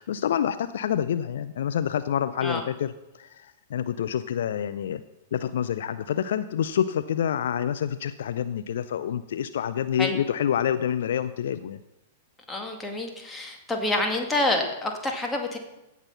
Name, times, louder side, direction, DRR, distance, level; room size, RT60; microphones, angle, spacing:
voice 1, 0.0-5.0 5.3-11.8, left 9 dB, 60° left, 13 dB, 0.4 m, -27 dB
voice 2, 12.5-15.6, left 2 dB, 10° left, 2 dB, 2.1 m, -27 dB
16.5 x 6.1 x 5.7 m, 0.94 s
figure-of-eight pair, 100°, 0 cm